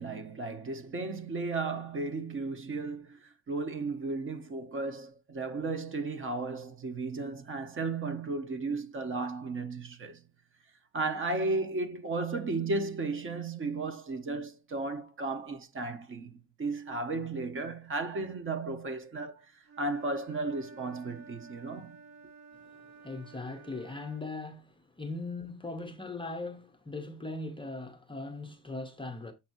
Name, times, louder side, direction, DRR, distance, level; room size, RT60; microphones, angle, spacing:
voice 1, 0.0-10.2 10.9-22.0, right 3 dB, 30° right, 1.0 m, -34 dB
Wind instrument woodwind instrument, 19.6-24.3, right 4 dB, 45° right, 5.0 m, -52 dB
voice 2, 22.7-29.3, left 3 dB, 10° left, 0.7 m, -40 dB
7.3 x 6.0 x 2.6 m
cardioid pair, 165°, 41 cm